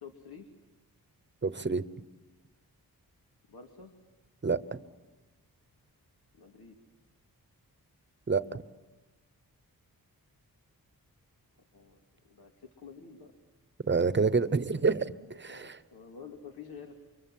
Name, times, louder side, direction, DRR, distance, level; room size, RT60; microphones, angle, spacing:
voice 1, 0.0-0.5 3.5-3.9 6.3-6.8 11.7-12.0 12.3-13.3 15.5-16.9, left 6 dB, 85° left, 3 dB, 2.5 m, -49 dB
voice 2, 1.4-1.8 4.4-4.8 8.3-8.6 13.9-15.1 15.4-15.8, right 4 dB, 30° right, 14 dB, 0.9 m, -27 dB
30.0 x 25.5 x 7.6 m, 1.2 s
wide cardioid pair, 150°, 37 cm